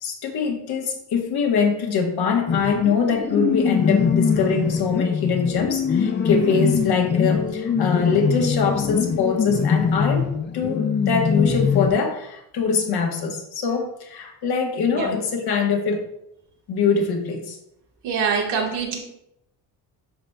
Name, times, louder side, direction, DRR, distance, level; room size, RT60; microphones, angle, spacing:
voice 1, 0.0-16.1 16.7-17.6, left 5 dB, 70° left, 2 dB, 1.3 m, -23 dB
sound 1, 2.5-11.9, left 6 dB, 30° left, 0.5 m, -22 dB
voice 2, 18.0-19.0, right 6 dB, 80° right, 0 dB, 1.5 m, -24 dB
10.0 x 4.2 x 2.3 m, 0.80 s
cardioid pair, 85°, 40 cm